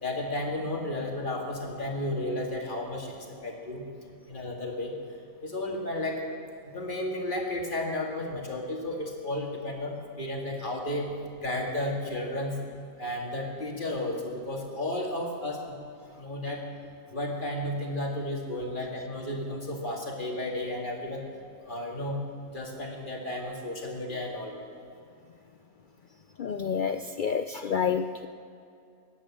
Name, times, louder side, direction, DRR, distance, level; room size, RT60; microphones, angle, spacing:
voice 1, 0.0-3.8 4.3-5.0 5.4-6.2 6.6-11.1 11.4-12.6 13.0-15.8 16.2-16.7 17.1-21.2 21.7-22.2 22.5-24.6, left 1 dB, 35° left, 0 dB, 2.4 m, -33 dB
voice 2, 26.4-28.3, left 7 dB, 90° left, 8 dB, 0.4 m, -29 dB
17.0 x 11.0 x 7.4 m, 2.5 s
omnidirectional pair, 1.5 m